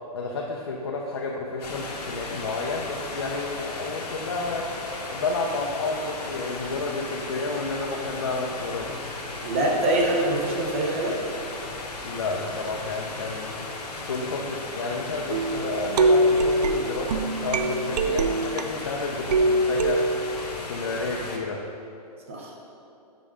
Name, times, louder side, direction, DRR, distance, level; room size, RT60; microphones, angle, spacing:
voice 1, 0.1-9.1 12.0-21.7, left 3 dB, 40° left, -2 dB, 0.5 m, -31 dB
sound 1, 1.6-21.4, left 2 dB, 90° left, 1.1 m, -36 dB
voice 2, 9.4-11.2 22.3-22.6, right 1 dB, 20° right, -1 dB, 0.5 m, -24 dB
sound 2, 15.3-18.9 19.3-20.5, right 1 dB, 90° right, 0.5 m, -23 dB
5.5 x 5.0 x 4.8 m, 2.6 s
hypercardioid pair, 175°, 20 cm